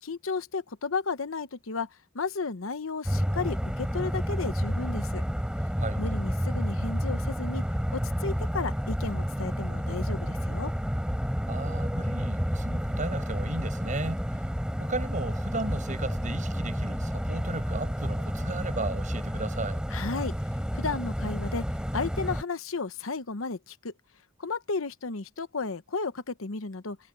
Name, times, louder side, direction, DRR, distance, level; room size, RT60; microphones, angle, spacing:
voice 1, 0.0-1.9 2.1-5.2 6.0-7.6 7.9-10.7 19.9-20.3 20.7-21.6 21.9-23.9 24.4-27.0, left 4 dB, 85° left, 1.0 m, -33 dB
sound 1, 3.1-22.4, equal, 5° right, 4.2 m, -30 dB
voice 2, 11.5-14.4 14.8-19.8, right 2 dB, 40° right, 6.6 m, -35 dB
head